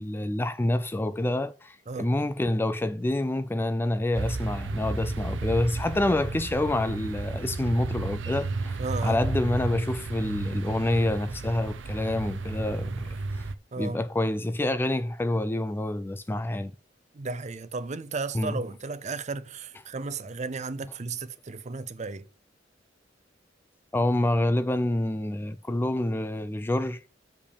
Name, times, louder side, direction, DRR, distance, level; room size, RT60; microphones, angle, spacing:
voice 1, 0.0-13.1 13.8-16.7 18.3-18.6 23.9-27.0, left 1 dB, 10° left, 0.3 m, -27 dB
sound 1, 4.1-13.5, right 3 dB, 85° right, 0.6 m, -33 dB
voice 2, 8.8-9.2 13.7-14.0 17.1-22.2, right 3 dB, 40° right, 0.6 m, -34 dB
6.7 x 5.2 x 7.1 m
head